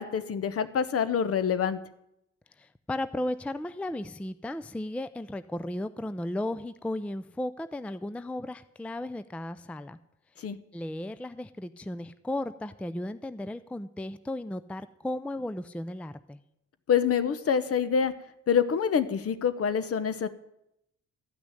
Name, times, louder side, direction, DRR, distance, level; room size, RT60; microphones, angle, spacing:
voice 1, 0.0-1.8 10.4-10.6 16.9-18.1 18.5-20.3, left 7 dB, 50° left, 13 dB, 1.0 m, -26 dB
voice 2, 2.6-10.0 10.4-16.4, left 1 dB, 5° left, 13 dB, 0.4 m, -35 dB
13.0 x 6.1 x 9.8 m, 0.80 s
cardioid pair, 90°, 30 cm